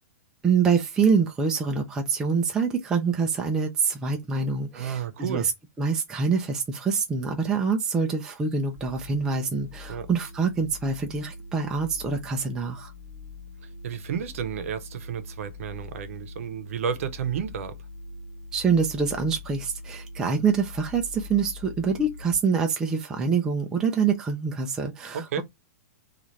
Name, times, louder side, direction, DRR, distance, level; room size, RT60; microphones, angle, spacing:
voice 1, 0.4-5.5 5.8-12.9 18.5-25.4, right 5 dB, 5° right, 0.3 m, -25 dB
voice 2, 4.7-5.5 9.9-10.1 13.6-17.8 25.1-25.4, right 8 dB, 55° right, 0.7 m, -32 dB
sound 1, 8.8-22.3, left 3 dB, 25° right, 1.0 m, -43 dB
3.1 x 2.4 x 3.8 m
supercardioid pair, 170°, 9 cm